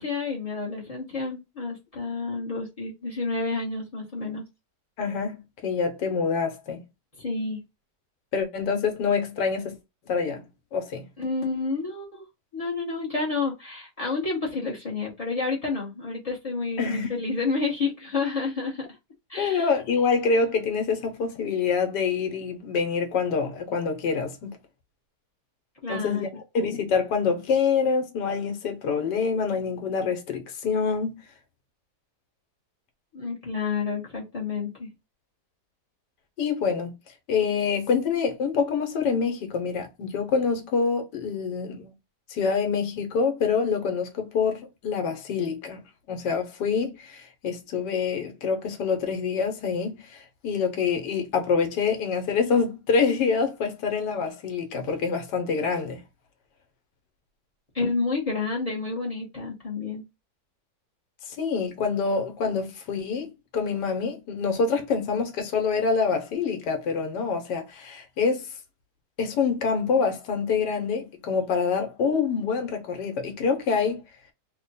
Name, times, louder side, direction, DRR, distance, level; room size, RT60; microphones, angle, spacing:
voice 1, 0.0-4.4 7.2-7.6 11.2-12.2 12.5-18.8 19.3-19.7 25.8-26.3 33.1-34.9 57.7-60.0, left 4 dB, 30° left, 0.8 m, -29 dB
voice 2, 5.0-6.8 8.3-9.7 10.1-10.4 10.7-11.0 16.8-17.1 19.4-24.5 25.9-26.3 26.5-31.2 36.4-36.9 37.3-41.9 42.3-45.8 46.1-56.0 61.3-68.5 69.2-74.0, left 5 dB, 80° left, 1.4 m, -26 dB
3.4 x 2.2 x 4.0 m
omnidirectional pair, 1.8 m